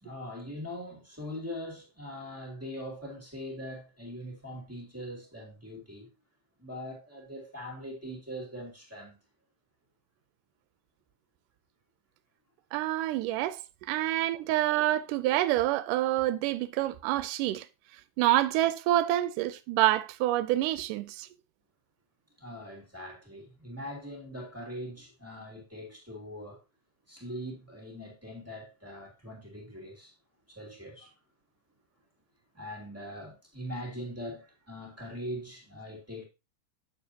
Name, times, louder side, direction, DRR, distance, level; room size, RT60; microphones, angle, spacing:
voice 1, 0.0-6.1 6.6-9.2 22.4-26.6 27.1-30.1 30.5-31.1 32.5-36.2, equal, 5° right, 1.8 m, -41 dB
voice 2, 12.7-17.7 18.2-21.3, right 15 dB, 80° right, 2.0 m, -27 dB
9.0 x 6.9 x 2.8 m
omnidirectional pair, 3.9 m